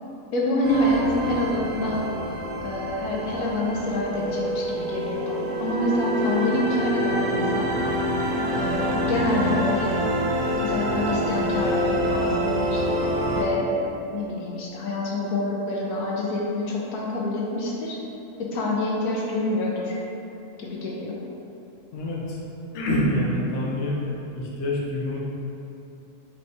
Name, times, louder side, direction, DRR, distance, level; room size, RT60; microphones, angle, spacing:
voice 1, 0.3-2.0 2.6-7.8 8.5-10.0 10.6-12.8 13.4-13.7 14.1-18.0 18.4-20.0 20.6-21.2, left 1 dB, 80° left, -3 dB, 1.1 m, -27 dB
sound 1, 0.6-13.4, equal, 70° right, 1.3 m, -26 dB
voice 2, 21.9-22.4 22.7-24.0 24.3-25.2, left 1 dB, 60° left, -4 dB, 0.8 m, -26 dB
4.6 x 3.3 x 2.6 m, 2.9 s
omnidirectional pair, 1.6 m